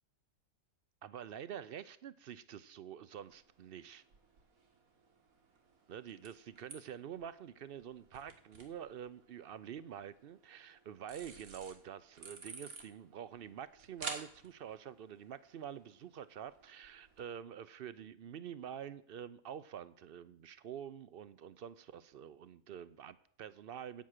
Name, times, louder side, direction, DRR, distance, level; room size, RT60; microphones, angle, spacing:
voice 1, 1.0-4.0 5.9-24.0, right 9 dB, 60° right, 16 dB, 0.6 m, -47 dB
sound 1, 3.2-17.3, right 4 dB, 90° right, 2.2 m, -53 dB
9.2 x 8.8 x 6.5 m, 0.64 s
omnidirectional pair, 1.4 m